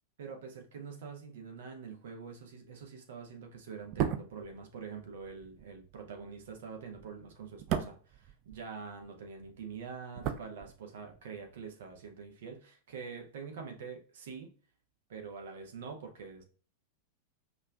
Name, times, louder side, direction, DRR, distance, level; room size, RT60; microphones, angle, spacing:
voice 1, 0.2-14.5 15.1-16.4, right 5 dB, 60° right, 3 dB, 0.8 m, -45 dB
sound 1, 3.8-9.1 9.4-11.2 11.5-11.6, right 9 dB, 40° right, 0.4 m, -38 dB
5.3 x 2.5 x 2.2 m, 0.41 s
figure-of-eight pair, 90°, 0 cm